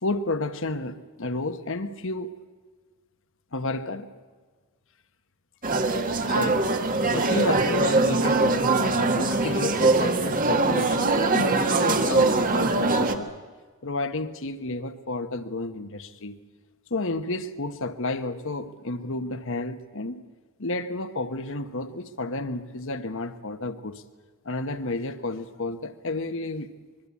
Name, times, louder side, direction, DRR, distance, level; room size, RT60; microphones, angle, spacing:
voice 1, 0.0-2.3 3.5-4.1 6.3-13.3 13.8-16.4 16.9-20.2 20.6-24.0 24.4-26.7, left 2 dB, 60° left, 1.3 m, -31 dB
sound 1, 5.6-13.2, right 3 dB, 40° right, 1.6 m, -22 dB
25.0 x 22.0 x 8.5 m
head